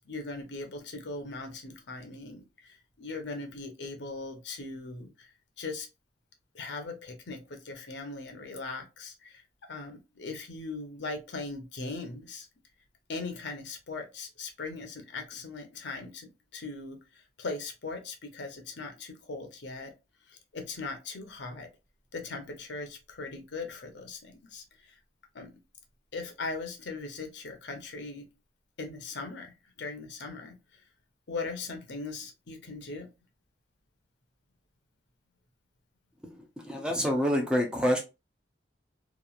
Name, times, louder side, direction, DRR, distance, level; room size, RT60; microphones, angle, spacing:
voice 1, 0.1-5.3 5.6-5.9 6.5-12.5 13.1-19.9 20.3-21.7 22.1-25.0 25.3-25.5 26.1-28.3 28.8-30.8 31.3-33.1, left 3 dB, 65° left, 0.7 m, -39 dB
voice 2, 36.6-38.0, equal, 5° right, 0.4 m, -26 dB
2.9 x 2.4 x 2.3 m
head